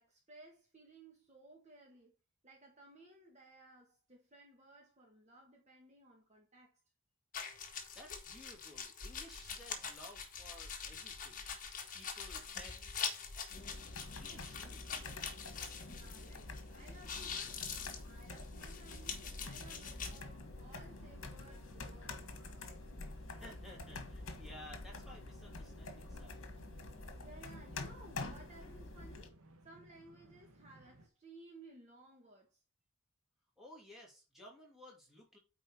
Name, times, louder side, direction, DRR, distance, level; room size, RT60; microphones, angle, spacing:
voice 1, 0.0-2.2 2.4-6.8 15.9-17.7 18.0-22.6 27.2-29.4 29.6-32.6, right 2 dB, 30° right, 1.6 m, -59 dB
sound 1, 7.3-16.6 16.9-20.2, left 6 dB, 35° left, 1.6 m, -44 dB
voice 2, 7.9-11.5 11.9-13.8 14.2-15.1 23.2-26.6 33.6-35.4, left 1 dB, ahead, 2.8 m, -56 dB
sound 2, 13.5-29.3, left 2 dB, 65° left, 1.5 m, -48 dB
sound 3, 19.4-31.1, right 1 dB, 80° right, 1.2 m, -62 dB
9.2 x 4.2 x 4.3 m
head